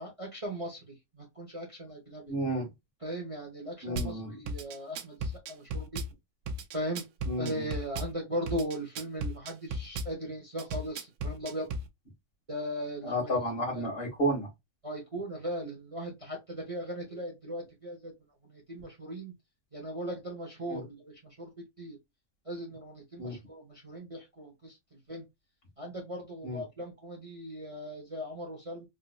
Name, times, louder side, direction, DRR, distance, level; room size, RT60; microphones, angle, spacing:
voice 1, 0.0-2.3 3.0-6.0 6.7-7.0 7.4-11.7 12.5-13.3 13.7-13.9 14.8-18.1 18.5-19.3 19.7-21.5 21.8-22.0 22.4-25.2 25.8-28.9, equal, 25° right, 1.0 m, -38 dB
voice 2, 2.3-2.7 3.8-4.4 7.3-7.7 13.0-14.5 20.7-20.8 23.2-23.4 26.4-26.6, right 1 dB, 40° left, 1.7 m, -31 dB
Drum kit / Bass drum, 4.0-4.1 4.5-6.1 6.5-8.1 8.5-10.1 10.6-11.9, right 1 dB, 90° right, 1.1 m, -35 dB
3.7 x 2.8 x 2.3 m
omnidirectional pair, 1.5 m